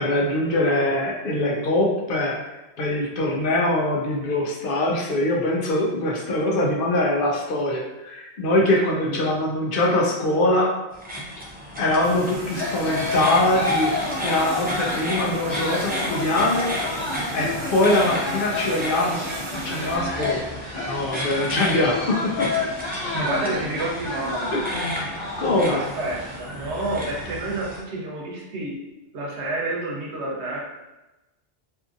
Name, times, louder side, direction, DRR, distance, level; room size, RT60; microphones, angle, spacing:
voice 1, 0.0-10.7 11.8-16.7 17.3-19.2 19.5-20.4 20.9-22.7 24.5-25.0 25.4-25.8, left 1 dB, 65° left, -1 dB, 0.7 m, -23 dB
sound 1, 10.9-27.8, equal, 15° right, 0.3 m, -34 dB
sound 2, 12.0-20.0, right 2 dB, 55° right, 0.7 m, -36 dB
sound 3, 12.5-26.4, left 3 dB, 45° left, 1.3 m, -30 dB
voice 2, 23.1-24.5 25.7-28.8 29.1-30.6, right 2 dB, 85° right, -2 dB, 1.0 m, -29 dB
2.7 x 2.5 x 2.4 m, 1.0 s
omnidirectional pair, 1.1 m